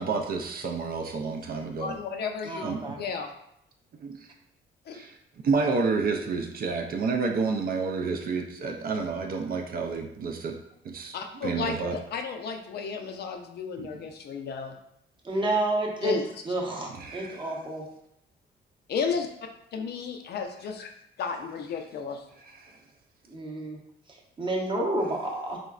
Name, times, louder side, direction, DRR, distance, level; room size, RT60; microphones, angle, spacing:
voice 1, 0.0-1.9 2.6-2.8 4.0-4.2 4.9-5.1 5.4-10.6 10.8-11.1 11.4-12.0 13.8-13.9 17.0-17.5 22.6-22.7, right 4 dB, 50° right, 4 dB, 0.4 m, -29 dB
voice 2, 1.8-3.3 4.9-5.0 11.1-14.8 16.0-16.2 18.9-19.3 19.7-20.9 21.2-22.2, left 5 dB, 55° left, 4 dB, 0.4 m, -33 dB
voice 3, 2.4-3.0 15.2-16.2 16.4-17.8 23.3-23.8 24.4-25.6, right 1 dB, 25° right, -1 dB, 0.7 m, -29 dB
3.8 x 2.1 x 2.3 m, 0.77 s
cardioid pair, 90°, 20 cm